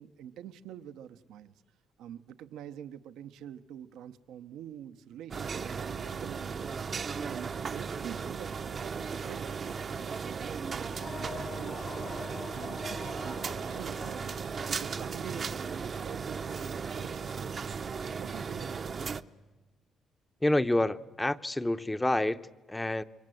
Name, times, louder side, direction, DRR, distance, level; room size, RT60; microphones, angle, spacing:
voice 1, 0.0-1.6 2.0-6.7 7.2-11.9 12.5-17.5 17.9-19.0, right 10 dB, 90° right, 0.9 m, -46 dB
sound 1, 5.3-19.2, right 5 dB, 45° right, 0.7 m, -36 dB
sound 2, 10.8-14.8, left 4 dB, 40° left, 0.9 m, -44 dB
voice 2, 20.4-23.0, left 1 dB, 10° left, 0.8 m, -28 dB
27.5 x 23.5 x 7.8 m
cardioid pair, 90°, 0 cm